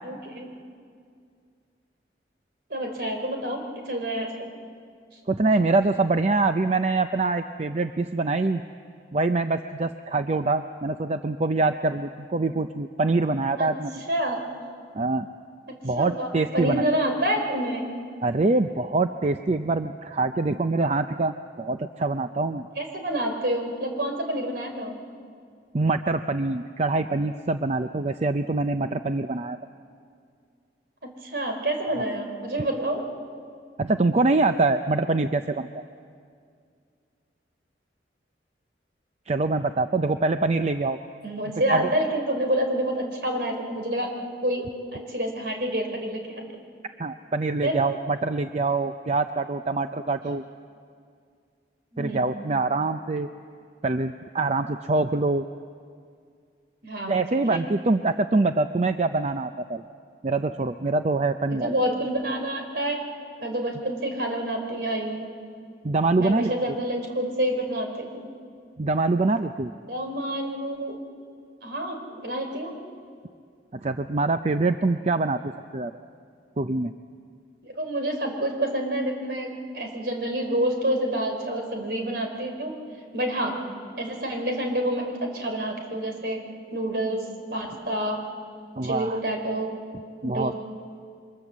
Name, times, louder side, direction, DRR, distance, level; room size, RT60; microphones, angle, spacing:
voice 1, 0.0-0.5 2.7-4.5 13.6-13.7 14.1-14.4 15.7-17.8 22.8-24.9 31.0-33.0 41.2-44.1 44.4-44.6 44.9-46.4 47.6-47.8 51.9-52.2 56.8-57.2 57.5-57.7 61.5-63.0 63.4-65.3 66.2-68.2 69.9-70.9 71.6-72.7 77.6-82.7 83.1-83.6 84.0-86.4 86.7-87.2 87.5-88.2 88.8-89.7 90.2-90.5, right 1 dB, 60° right, 3 dB, 3.8 m, -28 dB
voice 2, 5.3-8.6 9.1-14.0 14.9-15.3 15.8-16.8 18.2-22.7 25.7-29.6 33.8-35.8 39.3-41.0 41.7-41.9 47.0-50.4 52.0-53.3 53.8-55.5 57.1-59.8 60.2-61.7 65.8-66.5 68.8-69.7 73.7-75.9 76.6-76.9 88.8-89.2 90.2-90.5, right 3 dB, 40° right, 8 dB, 0.5 m, -24 dB
28.0 x 23.5 x 7.4 m, 2.3 s
head